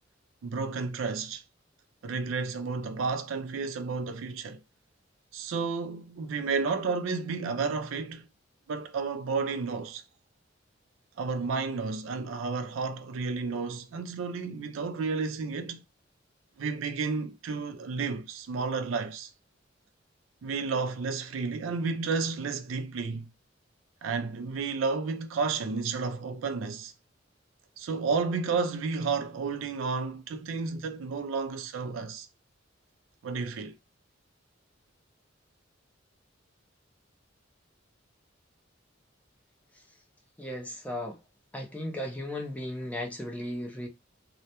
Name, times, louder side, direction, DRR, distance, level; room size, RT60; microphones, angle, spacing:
voice 1, 0.4-1.4 2.0-4.6 5.3-8.3 8.7-10.0 11.2-15.8 16.6-19.3 20.4-23.3 24.0-26.9 27.8-32.3 33.2-33.8, right 4 dB, 90° right, 0.4 m, -31 dB
voice 2, 40.4-41.2 41.5-43.9, left 1 dB, 10° left, 0.5 m, -36 dB
2.2 x 2.1 x 2.8 m
head